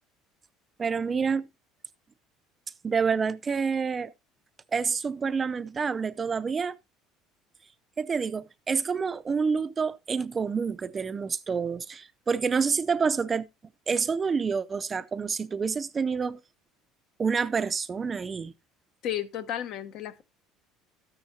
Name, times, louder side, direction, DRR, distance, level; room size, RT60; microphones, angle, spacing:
voice 1, 0.8-1.5 2.8-4.1 4.7-6.8 8.0-13.5 13.9-16.4 17.2-18.5, right 5 dB, 25° right, 0.5 m, -28 dB
voice 2, 19.0-20.2, left 11 dB, 60° left, 1.0 m, -33 dB
13.0 x 9.6 x 2.7 m
cardioid pair, 120°, 0 cm